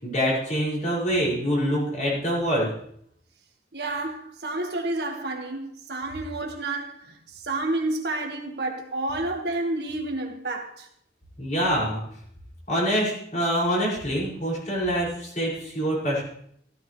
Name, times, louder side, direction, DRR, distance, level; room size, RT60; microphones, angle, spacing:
voice 1, 0.0-2.7 11.4-12.0 12.7-16.2, equal, 40° left, 6.0 m, -25 dB
voice 2, 3.7-10.9, right 2 dB, 65° right, 1.8 m, -30 dB
15.0 x 13.5 x 3.3 m
head